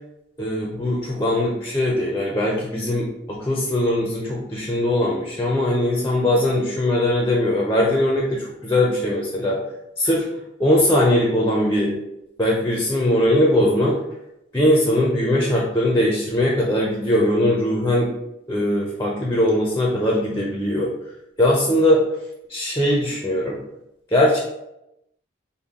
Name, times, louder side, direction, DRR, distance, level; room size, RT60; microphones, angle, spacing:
voice 1, 0.4-9.6 10.0-10.3 10.6-11.9 12.4-14.0 14.5-18.1 18.5-20.9 21.4-22.0 22.5-23.6 24.1-24.4, left 1 dB, 15° left, -3 dB, 0.5 m, -20 dB
5.4 x 2.2 x 3.6 m, 0.86 s
head